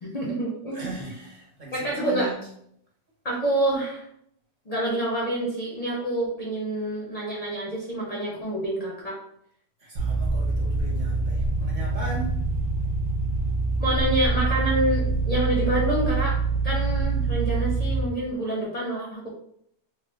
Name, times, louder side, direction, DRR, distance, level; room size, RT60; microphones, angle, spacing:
voice 1, 0.0-0.9 1.7-2.3 3.2-4.1 4.7-9.2 13.8-16.4 16.6-19.3, right 1 dB, 40° left, -4 dB, 0.6 m, -27 dB
voice 2, 0.7-2.4 9.8-12.4, right 2 dB, 40° right, -4 dB, 1.0 m, -38 dB
sound 1, 10.0-18.0, right 3 dB, 60° right, 1.0 m, -25 dB
3.1 x 2.2 x 3.2 m, 0.70 s
omnidirectional pair, 1.3 m